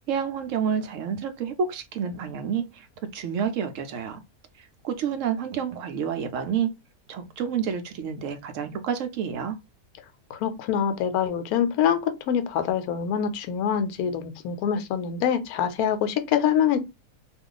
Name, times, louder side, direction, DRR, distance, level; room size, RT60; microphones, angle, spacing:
voice 1, 0.1-2.9 3.1-4.2 4.6-6.7 7.1-9.6, right 7 dB, 70° right, 0.8 m, -29 dB
voice 2, 10.3-16.8, left 8 dB, 80° left, 1.1 m, -25 dB
2.5 x 2.3 x 3.7 m
omnidirectional pair, 1.6 m